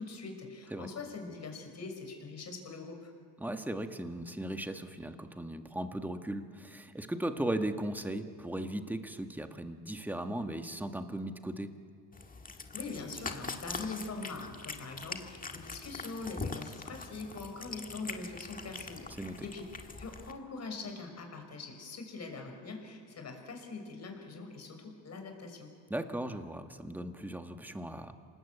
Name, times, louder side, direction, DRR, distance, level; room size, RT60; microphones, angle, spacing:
voice 1, 0.0-3.1 12.7-19.1 19.4-19.6 20.0-25.7, left 3 dB, 40° left, 4 dB, 5.6 m, -43 dB
voice 2, 3.4-11.7 19.2-19.5 25.9-28.2, right 1 dB, 5° right, 6 dB, 1.6 m, -37 dB
Cat, 12.1-20.3, left 4 dB, 20° left, 1.8 m, -43 dB
27.0 x 19.5 x 8.3 m, 2.2 s
cardioid pair, 110°, 40 cm